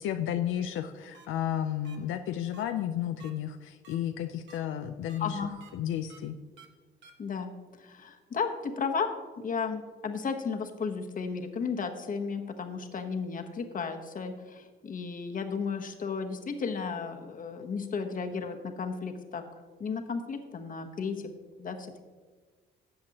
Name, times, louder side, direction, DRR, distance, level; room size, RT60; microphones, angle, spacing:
voice 1, 0.0-5.4 5.7-6.4, left 10 dB, 80° left, 7 dB, 0.5 m, -32 dB
sound 1, 1.1-1.3 1.8-2.0 2.5-2.6 3.2-3.3 3.8-3.9 4.5-4.6 5.1-5.2 5.6-5.7 6.1-6.2 6.6-6.7 7.0-7.1, right 6 dB, 65° right, 1.3 m, -52 dB
voice 2, 5.2-5.5 7.2-9.1 9.4-19.4 19.8-21.2 21.6-22.0, left 5 dB, 45° left, 5 dB, 1.0 m, -34 dB
12.5 x 7.7 x 2.9 m, 1.4 s
cardioid pair, 90°, 20 cm